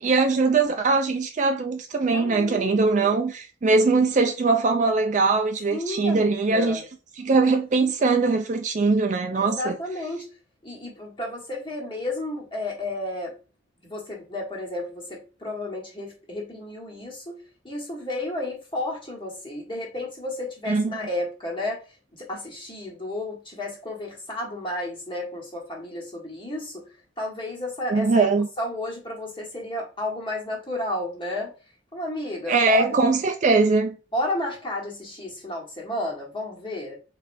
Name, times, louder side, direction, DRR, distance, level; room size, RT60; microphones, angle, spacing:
voice 1, 0.0-6.8 7.2-9.8 20.7-20.9 27.9-28.5 32.5-33.9, right 3 dB, 35° right, 0.3 m, -21 dB
voice 2, 2.1-3.2 5.7-6.8 9.2-10.3 10.6-13.3 13.8-21.8 22.2-26.9 27.2-28.3 28.6-31.5 31.9-33.0 34.1-37.0, left 1 dB, 25° left, 1.2 m, -32 dB
4.0 x 3.1 x 2.6 m
head